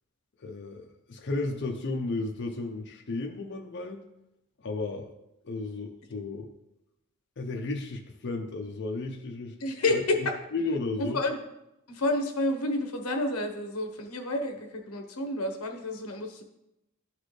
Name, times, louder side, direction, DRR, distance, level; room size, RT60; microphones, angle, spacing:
voice 1, 0.4-4.0 4.6-5.1 5.4-6.5 7.4-9.6 9.9-10.0 10.5-11.2, left 3 dB, 55° left, 1 dB, 0.6 m, -33 dB
voice 2, 9.6-10.4 11.0-11.4 11.9-16.4, left 2 dB, 90° left, 5 dB, 1.0 m, -29 dB
12.5 x 4.2 x 3.2 m, 0.88 s
head